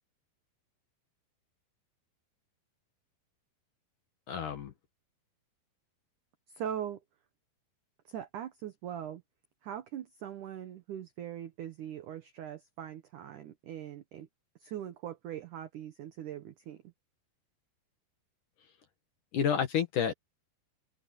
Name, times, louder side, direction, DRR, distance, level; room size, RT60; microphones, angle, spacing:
voice 1, 4.3-4.7 19.3-20.1, left 8 dB, 55° left, 2.6 m, -29 dB
voice 2, 6.5-7.0 8.1-9.2 9.6-14.3 14.6-16.8, right 10 dB, 85° right, 1.8 m, -41 dB
open air
omnidirectional pair, 5.2 m